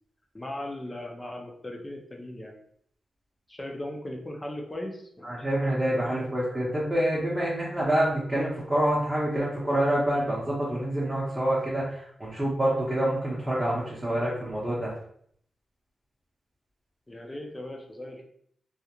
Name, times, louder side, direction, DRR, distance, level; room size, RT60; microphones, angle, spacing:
voice 1, 0.3-2.5 3.5-5.3 6.0-6.2 17.1-18.2, left 1 dB, 20° left, 0 dB, 0.5 m, -38 dB
voice 2, 5.2-14.9, right 1 dB, 20° right, -7 dB, 0.7 m, -27 dB
2.4 x 2.1 x 2.9 m, 0.65 s
wide cardioid pair, 100°, 0 cm